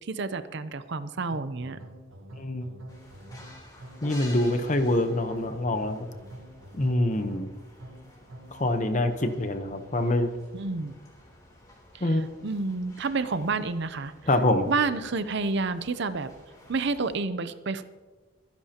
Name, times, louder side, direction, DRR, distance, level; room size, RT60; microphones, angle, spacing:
voice 1, 0.0-1.8 10.5-10.9 11.9-12.1 12.4-14.1 14.7-16.3 16.7-17.8, right 3 dB, 55° right, 12 dB, 0.6 m, -29 dB
sound 1, 1.3-9.2, right 1 dB, 80° right, 1.4 m, -46 dB
voice 2, 2.4-2.7 4.0-6.1 6.8-7.5 8.5-10.3 12.0-12.3 14.3-14.7, left 1 dB, 35° left, 8 dB, 1.0 m, -25 dB
sound 2, 2.9-17.2, left 1 dB, 20° left, 3.4 m, -51 dB
24.0 x 10.5 x 2.9 m, 1.3 s
head